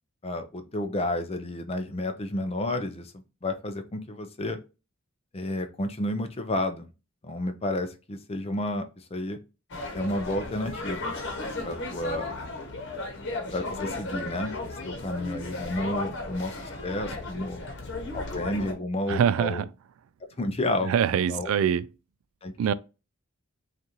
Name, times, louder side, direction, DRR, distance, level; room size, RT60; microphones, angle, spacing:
voice 1, 0.2-4.6 5.3-6.9 7.2-8.8 9.1-9.4 9.9-11.1 11.6-12.3 13.5-17.6 18.1-19.6 20.4-20.9 21.3-21.5 22.4-22.7, left 1 dB, 30° left, 0.5 m, -31 dB
sound 1, 9.7-18.7, left 2 dB, 55° left, 1.1 m, -35 dB
voice 2, 19.1-19.6 20.9-21.9 22.6-22.7, right 8 dB, 75° right, 0.3 m, -24 dB
5.3 x 2.5 x 2.9 m
head